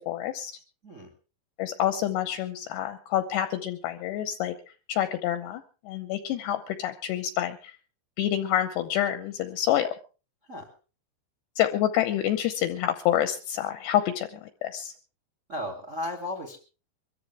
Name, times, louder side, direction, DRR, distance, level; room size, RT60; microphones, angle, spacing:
voice 1, 0.1-0.5 1.6-4.5 4.9-7.7 8.2-9.9 11.6-14.9, left 12 dB, 75° left, 9 dB, 2.7 m, -27 dB
voice 2, 15.5-16.6, left 1 dB, 30° right, 4 dB, 1.5 m, -35 dB
24.0 x 14.0 x 3.4 m, 0.34 s
omnidirectional pair, 5.6 m